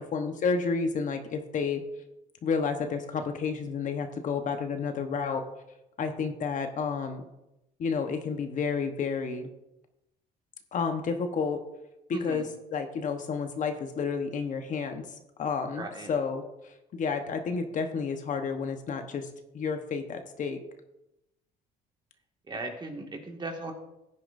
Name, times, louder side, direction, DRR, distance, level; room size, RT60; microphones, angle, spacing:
voice 1, 0.0-1.8 2.4-5.4 6.0-7.2 7.8-9.5 10.7-11.6 12.1-15.1 15.4-19.3 19.5-20.6, left 5 dB, 50° left, 6 dB, 1.1 m, -31 dB
voice 2, 12.1-12.5 15.8-16.1 22.5-23.7, right 2 dB, 25° right, 2 dB, 1.9 m, -37 dB
16.0 x 9.8 x 2.6 m, 0.91 s
cardioid pair, 110°, 17 cm